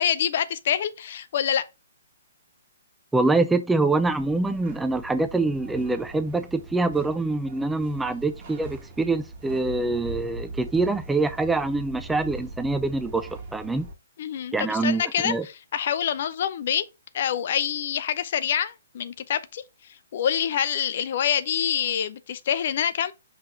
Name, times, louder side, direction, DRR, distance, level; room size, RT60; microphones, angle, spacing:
voice 1, 0.0-1.7 14.2-16.9 17.1-19.6 19.9-23.1, left 9 dB, 50° left, 0.6 m, -26 dB
voice 2, 3.1-13.9 14.5-15.4, right 3 dB, 5° right, 0.4 m, -25 dB
sound 1, 3.9-13.9, right 3 dB, 40° right, 1.7 m, -41 dB
5.7 x 4.3 x 3.9 m
figure-of-eight pair, 125°, 0 cm